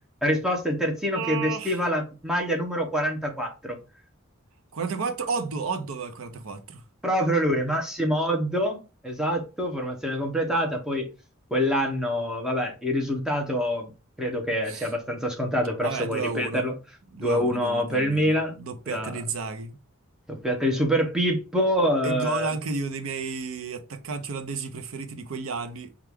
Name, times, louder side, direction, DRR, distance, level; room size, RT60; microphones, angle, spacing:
voice 1, 0.2-3.8 7.0-11.1 11.5-13.9 14.2-16.7 17.2-18.5 18.9-19.1 20.3-22.5, equal, 5° right, 0.8 m, -26 dB
voice 2, 1.1-1.8 4.7-6.8 14.7-14.9 15.8-16.7 17.1-19.8 22.0-25.9, right 4 dB, 85° right, 0.6 m, -32 dB
4.5 x 2.4 x 3.4 m
head